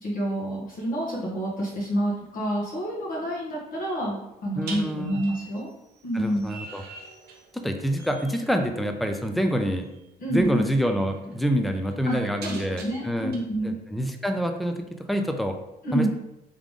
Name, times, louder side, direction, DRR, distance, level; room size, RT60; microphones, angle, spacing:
voice 1, 0.0-5.7 6.0-6.5 10.2-10.6 12.0-13.8 15.8-16.1, right 1 dB, 55° left, -5 dB, 1.5 m, -28 dB
sound 1, 2.3-2.4 4.6-7.7 8.0-8.4 9.9-10.1 10.5-13.4, right 4 dB, 70° right, 1.0 m, -44 dB
voice 2, 4.6-5.2 6.1-6.8 7.5-9.9 10.3-13.3 13.6-15.6 15.9-16.1, equal, ahead, 5 dB, 0.4 m, -27 dB
3.6 x 3.6 x 3.6 m, 0.91 s
cardioid pair, 110°, 17 cm